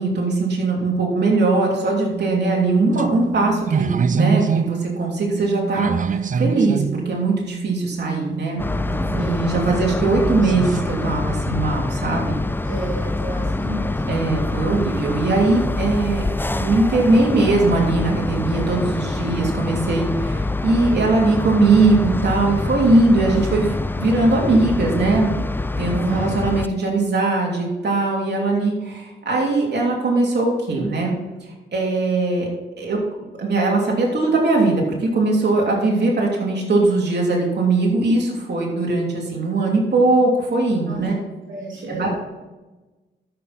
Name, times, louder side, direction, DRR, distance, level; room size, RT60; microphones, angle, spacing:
voice 1, 0.0-8.6 9.1-12.4 14.1-25.3 25.8-31.1 31.7-32.5 32.8-41.1 41.9-42.1, right 3 dB, 60° right, -2 dB, 3.1 m, -20 dB
sound 1, 2.1-10.9, right 6 dB, 40° right, 0.5 m, -26 dB
sound 2, 8.6-26.7, left 2 dB, 10° left, 0.5 m, -25 dB
voice 2, 9.1-9.9 12.6-14.1 14.8-15.0 26.1-26.3 40.8-42.1, right 2 dB, 80° right, -4 dB, 2.8 m, -32 dB
13.0 x 6.2 x 4.2 m, 1.2 s
cardioid pair, 55°, 20 cm